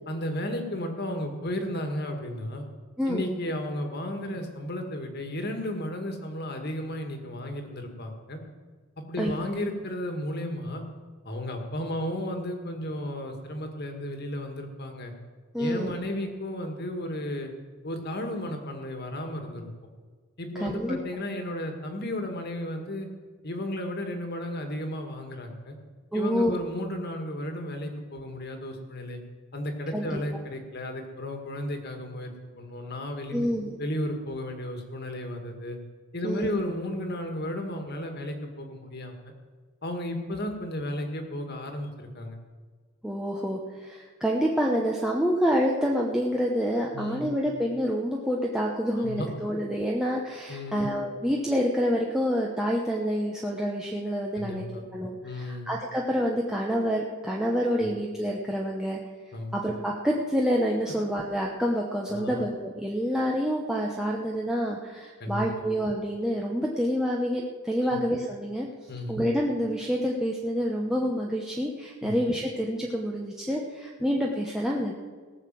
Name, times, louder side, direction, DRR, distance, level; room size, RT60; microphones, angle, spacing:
voice 1, 0.1-2.7 3.1-8.4 9.1-10.8 11.3-15.1 15.6-17.5 17.8-19.7 20.4-23.1 23.4-25.8 26.1-29.2 29.5-32.3 32.6-33.5 33.8-35.8 36.1-39.3 39.8-42.4 46.9-47.3 49.0-49.3 50.5-50.8 54.4-54.8 55.2-55.7 57.8-57.9 59.3-59.5 62.1-62.4 65.2-65.4 67.8-68.0 68.9-69.2 72.0-72.1, left 1 dB, 45° left, 4 dB, 1.9 m, -33 dB
voice 2, 15.5-15.9 20.6-21.0 26.1-26.6 29.9-30.2 33.3-33.8 36.2-36.6 43.0-54.6 54.9-59.0 59.5-68.7 69.1-74.9, equal, 5° right, -2 dB, 0.9 m, -27 dB
18.0 x 6.6 x 7.6 m, 1.5 s
head